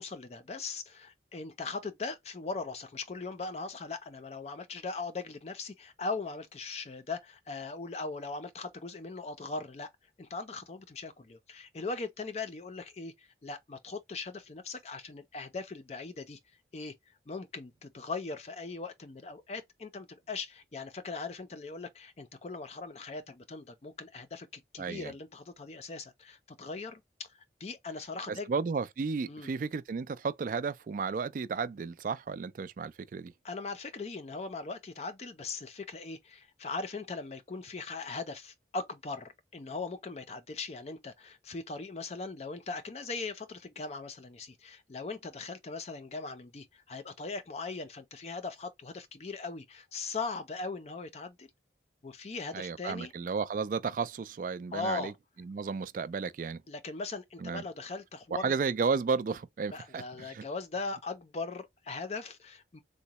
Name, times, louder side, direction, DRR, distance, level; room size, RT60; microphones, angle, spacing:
voice 1, 0.0-9.9 10.2-16.4 16.7-16.9 17.3-28.5 29.3-29.5 33.4-51.5 52.0-53.1 54.7-55.1 56.7-58.5 59.7-62.8, left 3 dB, 35° left, 0.4 m, -39 dB
voice 2, 24.8-25.1 28.3-33.3 52.5-56.6 57.4-57.7 58.3-60.5, right 5 dB, 50° right, 0.3 m, -33 dB
3.7 x 2.1 x 2.9 m
head